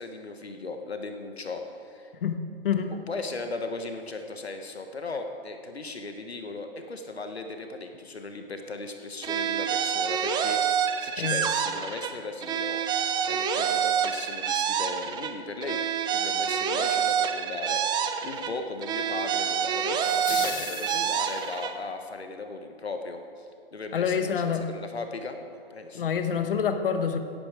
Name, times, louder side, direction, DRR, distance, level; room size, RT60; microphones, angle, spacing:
voice 1, 0.0-2.1 3.1-12.8 13.2-15.8 16.1-26.0, left 3 dB, 85° left, 5 dB, 1.3 m, -37 dB
sound 1, 9.2-12.1 12.4-15.3 15.6-18.5 18.8-21.7, right 8 dB, 15° right, 0.7 m, -27 dB
sound 2, 20.0-21.6, left 13 dB, 20° left, 0.4 m, -38 dB
voice 2, 23.9-24.6 25.9-27.2, left 7 dB, 60° left, 8 dB, 1.3 m, -26 dB
16.5 x 9.2 x 4.9 m, 2.4 s
figure-of-eight pair, 120°, 31 cm